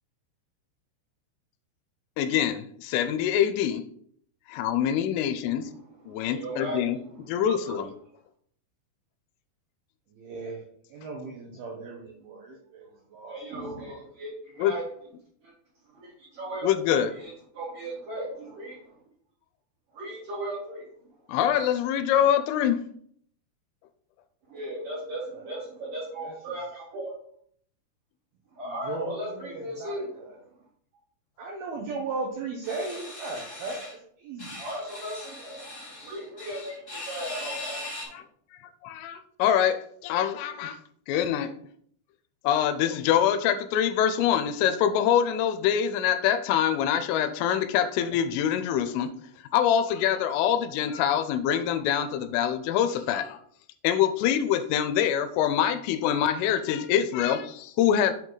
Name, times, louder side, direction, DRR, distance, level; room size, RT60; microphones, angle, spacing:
voice 1, 2.2-3.8 4.5-5.7 6.1-7.0 7.3-7.9 14.6-14.8 16.6-17.1 21.3-22.8 38.1-38.2 38.8-40.8 41.1-41.5 42.4-49.1 49.5-53.4 53.8-58.1, left 9 dB, 85° left, 11 dB, 3.1 m, -25 dB
voice 2, 6.0-6.8 7.1-7.9 13.3-14.8 15.4-15.5 15.9-19.0 19.9-20.8 24.5-27.1 28.5-30.1 34.6-38.2, right 1 dB, 50° right, -8 dB, 3.5 m, -37 dB
voice 3, 10.2-10.6 10.9-12.9 13.1-13.4 13.8-14.0 25.3-25.5 26.2-26.6 28.8-30.4 31.4-33.8 34.2-34.6, right 3 dB, 80° right, -1 dB, 2.2 m, -36 dB
sound 1, 32.6-34.0 34.4-38.0, left 2 dB, 20° left, 2.1 m, -40 dB
7.6 x 5.1 x 3.9 m, 0.65 s
omnidirectional pair, 5.8 m